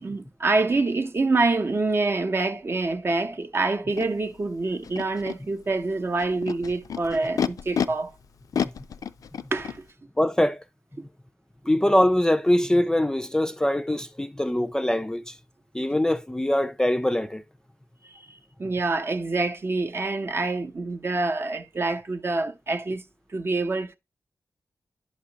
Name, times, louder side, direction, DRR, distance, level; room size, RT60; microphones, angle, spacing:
voice 1, 0.0-8.1 9.5-9.8 18.0-23.0 23.3-24.0, right 3 dB, 45° right, 0.6 m, -26 dB
Animal, 4.0-4.1 4.8-5.4 6.2-7.9 8.5-9.8, left 7 dB, 85° left, 0.3 m, -29 dB
voice 2, 10.2-10.6 11.7-15.4 15.7-17.4, left 1 dB, 10° left, 0.3 m, -23 dB
10.5 x 4.9 x 2.9 m
wide cardioid pair, 75°, 6 cm